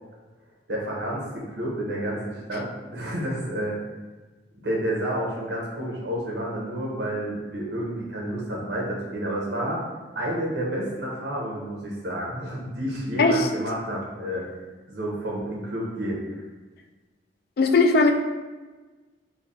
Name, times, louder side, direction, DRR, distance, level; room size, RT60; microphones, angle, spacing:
voice 1, 0.7-3.8 4.6-9.8 10.1-14.5 14.9-16.4, right 1 dB, 65° right, -3 dB, 0.9 m, -30 dB
voice 2, 17.6-18.1, left 3 dB, 55° left, 6 dB, 0.3 m, -18 dB
3.3 x 2.2 x 4.0 m, 1.3 s
head